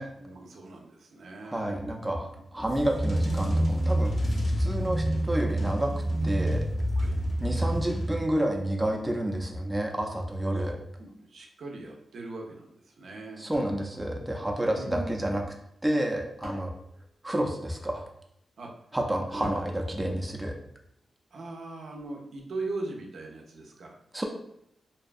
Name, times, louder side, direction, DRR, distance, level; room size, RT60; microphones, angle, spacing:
voice 1, 0.2-1.9 2.5-2.6 7.0-7.2 11.0-13.5 14.7-15.3 16.4-16.6 18.6-18.7 21.3-24.0, right 2 dB, 75° right, 0 dB, 0.4 m, -40 dB
voice 2, 1.4-5.9 6.2-6.6 7.4-10.8 13.4-15.4 15.8-16.7 17.2-18.0 18.9-20.5 24.1-24.2, right 1 dB, 15° right, 1 dB, 0.4 m, -29 dB
sound 1, 2.6-8.6, right 1 dB, 40° left, 0.7 m, -27 dB
sound 2, 13.5-15.1 15.9-17.9 19.4-21.0, equal, 70° left, 0.8 m, -47 dB
2.6 x 2.2 x 2.4 m, 0.75 s
cardioid pair, 75°, 0 cm